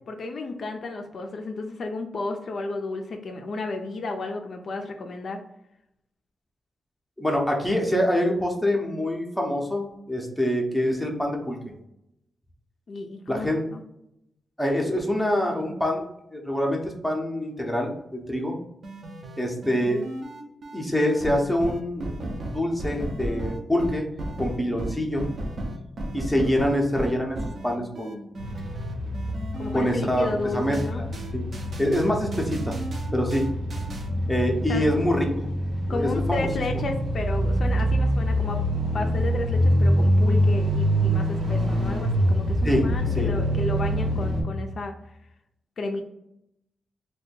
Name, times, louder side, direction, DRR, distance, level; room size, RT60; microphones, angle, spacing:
voice 1, 0.1-5.4 12.9-13.8 29.6-31.1 34.7-34.9 35.9-38.6 38.9-44.9 45.8-46.0, left 2 dB, 50° left, 3 dB, 0.3 m, -32 dB
voice 2, 7.2-11.6 13.3-13.7 14.6-16.1 16.3-18.6 19.4-20.0 20.7-24.1 24.4-25.3 26.1-27.4 27.6-28.3 29.7-30.3 30.5-31.1 31.3-31.5 31.8-32.8 33.1-33.5 34.3-35.5 35.9-36.8 42.6-42.9 43.2-43.4, equal, 5° left, 0 dB, 0.6 m, -25 dB
sound 1, 18.8-34.1, right 1 dB, 45° right, 0.5 m, -35 dB
sound 2, 28.4-44.4, equal, 60° right, 0.9 m, -25 dB
2.7 x 2.2 x 4.1 m, 0.81 s
wide cardioid pair, 175°, 0 cm